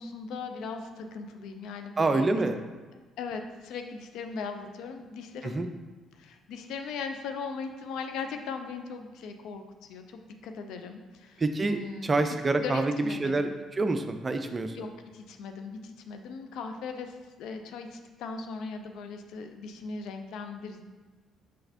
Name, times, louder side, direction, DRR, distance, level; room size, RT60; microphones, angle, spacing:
voice 1, 0.0-2.4 2.9-5.7 6.1-13.5 14.7-20.8, left 5 dB, 60° left, 6 dB, 0.3 m, -39 dB
voice 2, 2.0-2.6 5.4-5.7 11.4-12.9 13.2-14.9, right 3 dB, 30° right, 8 dB, 0.4 m, -27 dB
5.3 x 3.8 x 2.6 m, 1.3 s
figure-of-eight pair, 45°, 0 cm